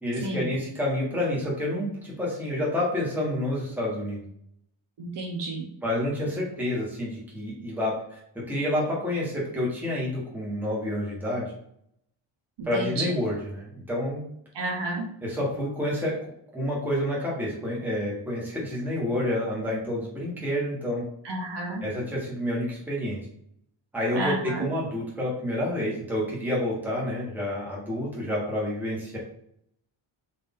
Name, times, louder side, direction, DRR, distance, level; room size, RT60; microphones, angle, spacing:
voice 1, 0.0-4.2 5.8-11.5 12.6-14.2 15.2-16.2 16.5-21.0 21.8-23.2 23.9-29.2, left 1 dB, 5° right, -5 dB, 1.2 m, -29 dB
voice 2, 5.0-5.7 12.6-13.1 14.5-15.1 21.2-21.8 24.1-24.7, right 2 dB, 55° right, -1 dB, 0.9 m, -31 dB
4.0 x 2.6 x 3.6 m, 0.71 s
wide cardioid pair, 175°, 48 cm